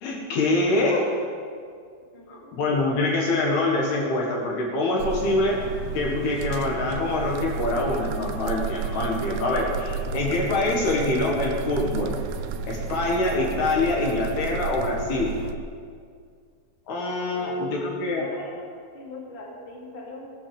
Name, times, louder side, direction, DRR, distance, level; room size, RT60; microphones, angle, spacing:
voice 1, 0.0-1.1 2.3-5.6 5.9-12.1 12.7-15.3 16.9-18.2, left 2 dB, 65° left, -2 dB, 3.2 m, -25 dB
voice 2, 2.1-2.5 17.3-17.7 18.1-18.6 18.9-20.3, left 3 dB, 20° left, -4 dB, 2.1 m, -39 dB
sound 1, 5.0-15.6, right 5 dB, 85° right, 2.2 m, -32 dB
18.5 x 8.9 x 7.0 m, 2.2 s
omnidirectional pair, 5.5 m